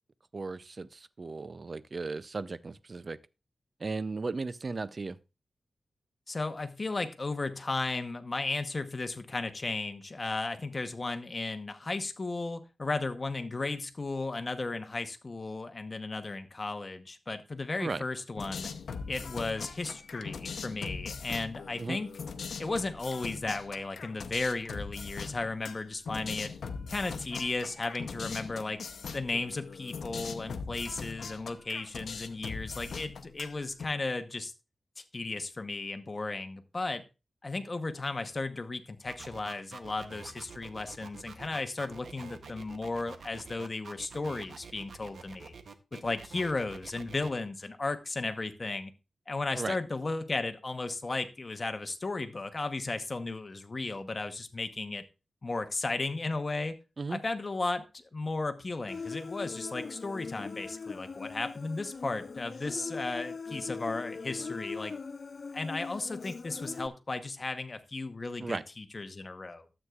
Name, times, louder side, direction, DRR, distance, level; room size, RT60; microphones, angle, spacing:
voice 1, 0.3-3.2 3.8-5.2 17.8-18.0 21.8-22.0 49.6-49.8 57.0-57.2 68.4-68.6, right 3 dB, 45° right, 0.4 m, -36 dB
voice 2, 6.3-18.7 19.1-22.1 22.6-26.5 26.9-28.8 29.1-34.5 35.0-37.0 37.4-45.5 45.9-48.9 49.3-55.0 55.4-56.8 57.1-57.8 58.1-64.9 65.5-69.7, left 3 dB, 35° left, 0.9 m, -35 dB
sound 1, 18.4-33.8, left 5 dB, 85° left, 0.7 m, -41 dB
sound 2, 39.1-47.3, right 5 dB, 80° right, 0.8 m, -47 dB
Human voice, 58.9-66.9, left 4 dB, 50° left, 0.4 m, -40 dB
12.5 x 8.1 x 2.4 m
wide cardioid pair, 95°, 0 cm